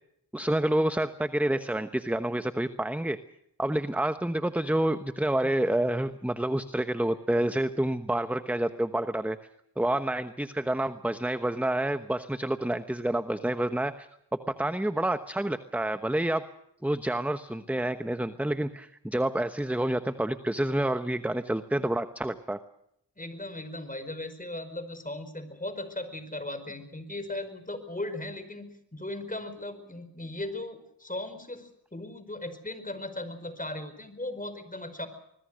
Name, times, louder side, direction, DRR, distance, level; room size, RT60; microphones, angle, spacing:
voice 1, 0.3-3.2 3.6-9.4 9.8-14.1 14.6-16.4 16.8-22.6, right 1 dB, 5° right, 10 dB, 1.0 m, -28 dB
voice 2, 23.2-35.1, left 1 dB, 20° left, 10 dB, 4.9 m, -37 dB
25.0 x 21.5 x 6.4 m, 0.76 s
cardioid pair, 70°, 44 cm